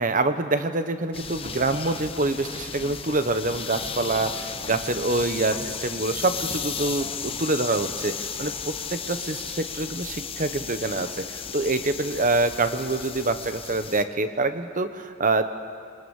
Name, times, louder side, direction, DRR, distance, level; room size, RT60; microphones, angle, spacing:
voice 1, 0.0-5.5 5.8-15.4, right 2 dB, 45° right, 9 dB, 1.2 m, -26 dB
sound 1, 1.1-14.0, left 6 dB, 30° left, 0.9 m, -34 dB
27.5 x 23.0 x 7.3 m, 2.2 s
head